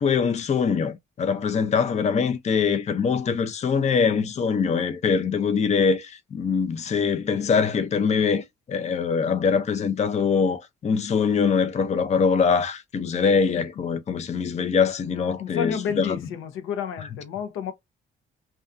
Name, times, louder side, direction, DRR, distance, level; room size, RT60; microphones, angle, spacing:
voice 1, 0.0-16.2, left 6 dB, 35° left, 0.5 m, -23 dB
voice 2, 15.4-17.7, left 7 dB, 85° left, 0.6 m, -30 dB
2.5 x 2.3 x 2.4 m
cardioid pair, 90°, 20 cm